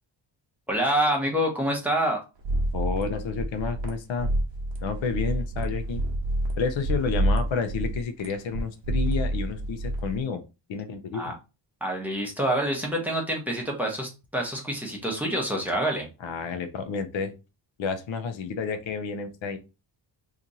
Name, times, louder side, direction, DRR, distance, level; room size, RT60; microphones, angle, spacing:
voice 1, 0.7-2.2 11.1-11.3 11.8-16.1, right 1 dB, 5° right, 0 dB, 0.8 m, -27 dB
sound 1, 2.4-10.2, right 1 dB, 65° right, 0.9 m, -28 dB
voice 2, 2.7-4.3 4.8-6.0 6.6-10.4 10.7-11.3 16.2-17.3 17.8-19.6, left 5 dB, 80° left, 8 dB, 0.7 m, -30 dB
2.9 x 2.5 x 3.9 m, 0.29 s
wide cardioid pair, 170°, 45 cm